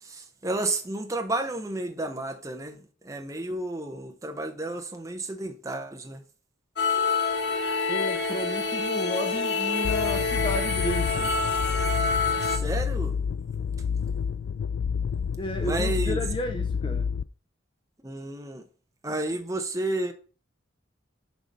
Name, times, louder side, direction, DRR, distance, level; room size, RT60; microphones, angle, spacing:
voice 1, 0.0-2.8 3.0-6.2 12.4-13.2 15.6-16.2 18.0-18.6 19.0-20.1, right 2 dB, 15° right, 0.8 m, -31 dB
sound 1, 6.8-12.6, left 4 dB, 55° left, 0.9 m, -27 dB
voice 2, 7.9-11.3 15.4-17.1, equal, 25° left, 0.5 m, -32 dB
sound 2, 9.8-17.2, left 6 dB, 80° left, 0.4 m, -29 dB
6.2 x 4.9 x 5.2 m
head